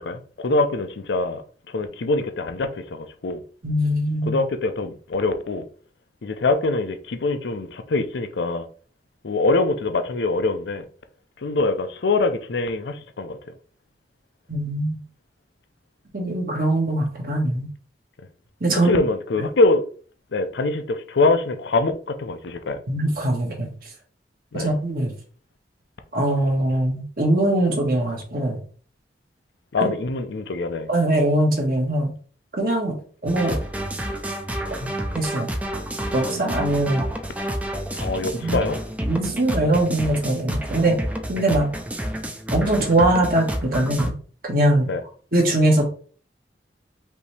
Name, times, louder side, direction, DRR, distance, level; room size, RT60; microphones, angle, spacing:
voice 1, 0.0-1.4 1.7-3.4 4.2-5.7 6.2-8.7 9.2-10.8 11.4-13.4 18.9-19.8 20.3-22.8 24.5-24.7 29.7-30.9 38.0-38.8 40.8-40.9 44.9-45.0, left 3 dB, 75° left, 0.5 m, -24 dB
voice 2, 3.6-4.4 14.5-15.0 16.1-17.7 18.6-19.0 22.9-23.7 24.5-25.1 26.1-28.6 29.8-29.9 30.9-32.1 32.6-32.9 33.2-33.6 34.8-34.9 35.1-35.5 36.1-37.0 38.3-38.6 39.0-41.0 41.3-41.7 42.5-44.1 44.4-44.9 45.3-45.9, right 1 dB, 55° right, 1.3 m, -21 dB
sound 1, 33.3-44.1, right 1 dB, 10° right, 0.4 m, -29 dB
5.2 x 2.8 x 3.3 m
head